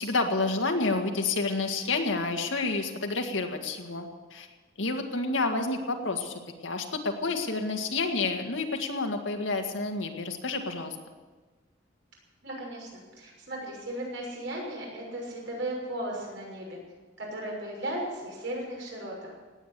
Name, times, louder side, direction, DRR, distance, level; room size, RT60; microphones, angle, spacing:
voice 1, 0.0-4.5 4.8-6.3 6.6-11.0, left 3 dB, 80° left, 3 dB, 1.9 m, -29 dB
voice 2, 12.4-16.8 17.2-19.3, right 1 dB, 70° right, -2 dB, 6.3 m, -36 dB
18.0 x 9.3 x 8.4 m, 1.3 s
head